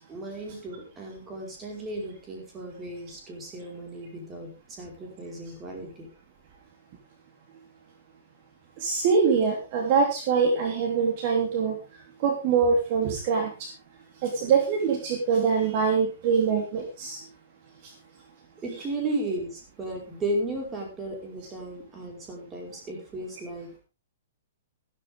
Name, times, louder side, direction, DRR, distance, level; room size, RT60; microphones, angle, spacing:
voice 1, 0.1-4.5 4.8-6.1 18.6-23.7, right 1 dB, 15° right, 0 dB, 4.9 m, -34 dB
voice 2, 8.8-11.8 12.2-13.7 14.2-17.2, right 5 dB, 40° right, 2 dB, 3.1 m, -24 dB
14.0 x 13.0 x 3.6 m, 0.29 s
hypercardioid pair, 160°, 0 cm